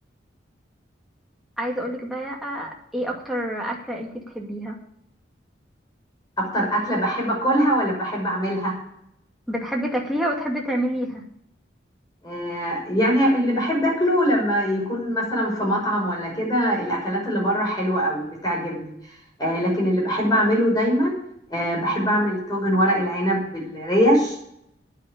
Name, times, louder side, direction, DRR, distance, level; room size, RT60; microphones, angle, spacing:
voice 1, 1.6-4.1 4.3-4.8 9.5-11.2, equal, ahead, -2 dB, 2.3 m, -28 dB
voice 2, 6.4-8.7 12.2-18.9 19.4-21.1 21.5-24.4, equal, 20° left, -2 dB, 6.3 m, -22 dB
10.0 x 9.8 x 8.5 m, 0.73 s
head